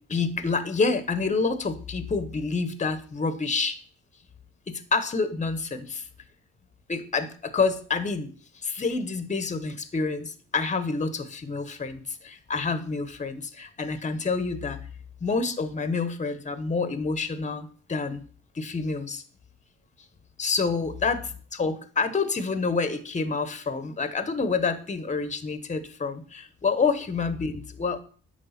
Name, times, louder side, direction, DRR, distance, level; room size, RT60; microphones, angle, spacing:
voice 1, 0.1-3.8 4.7-6.1 6.9-14.8 15.2-18.2 18.5-19.2 20.4-21.2 21.5-28.0, left 4 dB, 25° left, 11 dB, 0.9 m, -28 dB
9.3 x 3.3 x 5.7 m, 0.43 s
cardioid pair, 90°, 30 cm